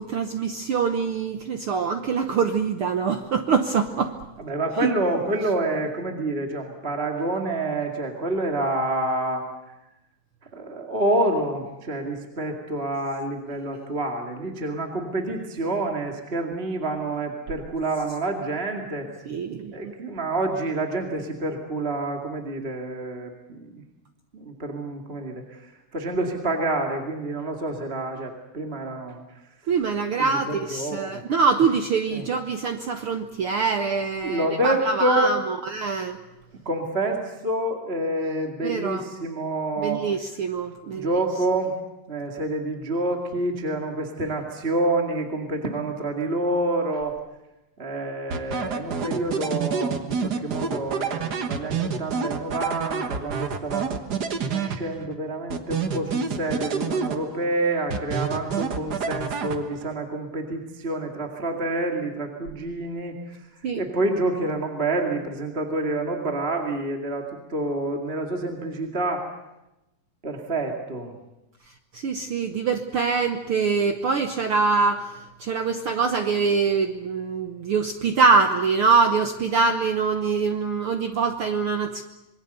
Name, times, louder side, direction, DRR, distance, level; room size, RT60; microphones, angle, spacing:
voice 1, 0.0-4.2 19.2-19.9 29.7-36.2 38.6-39.1 39.8-41.2 63.6-63.8 71.9-82.0, right 5 dB, 70° right, 6 dB, 1.3 m, -24 dB
voice 2, 4.4-9.4 10.5-19.1 19.7-23.8 24.3-25.7 25.9-29.2 30.3-31.2 32.1-32.2 34.2-35.3 36.7-40.0 40.8-41.8 42.1-47.1 47.8-53.9 54.5-63.4 63.8-69.3 70.2-71.2, right 2 dB, 20° right, 2 dB, 2.0 m, -28 dB
sound 1, 48.3-55.1 55.5-57.5 57.9-59.9, right 5 dB, 55° right, 1.1 m, -28 dB
26.5 x 22.5 x 6.9 m, 0.93 s
omnidirectional pair, 3.8 m